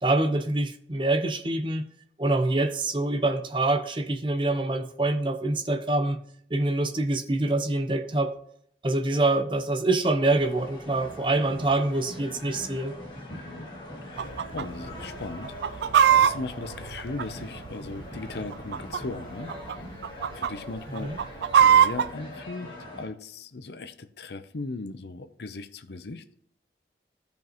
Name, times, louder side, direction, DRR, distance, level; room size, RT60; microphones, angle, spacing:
voice 1, 0.0-1.8 2.2-6.2 6.5-8.3 8.8-12.9 21.0-21.2, right 2 dB, 30° right, 0.7 m, -25 dB
sound 1, 10.3-23.1, left 1 dB, 30° left, 2.4 m, -42 dB
voice 2, 13.3-13.7 14.0-19.5 20.3-21.1 21.6-26.2, left 3 dB, 75° left, 0.7 m, -38 dB
Chicken rooster, 14.2-14.6 14.9-15.0 15.4-17.7 18.4-19.2 19.5-19.7 20.0-20.5 21.0-22.1, right 8 dB, 75° right, 0.3 m, -20 dB
15.0 x 5.3 x 3.0 m
head